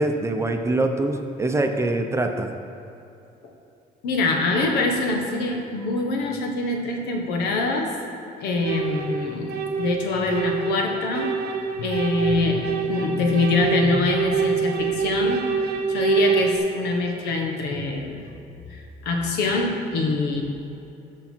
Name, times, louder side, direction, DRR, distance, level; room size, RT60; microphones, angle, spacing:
voice 1, 0.0-2.6, right 2 dB, 15° right, 5 dB, 0.7 m, -24 dB
voice 2, 4.0-8.0 8.4-11.4 11.8-15.4 15.9-18.2 18.7-20.4, left 3 dB, 90° left, 2 dB, 1.3 m, -24 dB
sound 1, 8.6-16.6, right 6 dB, 80° right, 1.0 m, -26 dB
13.5 x 5.3 x 4.5 m, 2.8 s
cardioid pair, 110°, 17 cm